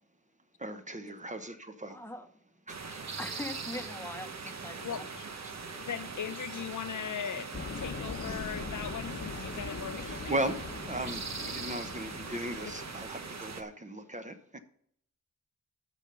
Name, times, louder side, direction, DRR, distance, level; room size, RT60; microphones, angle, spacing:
voice 1, 0.6-2.0 2.7-3.0 10.0-10.6 10.9-14.6, right 1 dB, 25° right, 1.0 m, -37 dB
voice 2, 1.9-2.3 3.2-5.1 5.7-5.8, left 1 dB, 5° left, 1.1 m, -42 dB
sound 1, 2.7-13.6, right 4 dB, 60° right, 1.1 m, -41 dB
voice 3, 4.8-5.2 5.7-10.4 12.6-12.7, left 8 dB, 70° left, 0.8 m, -39 dB
sound 2, 7.5-13.1, left 4 dB, 40° left, 1.0 m, -41 dB
12.5 x 5.2 x 6.8 m
wide cardioid pair, 110°, 31 cm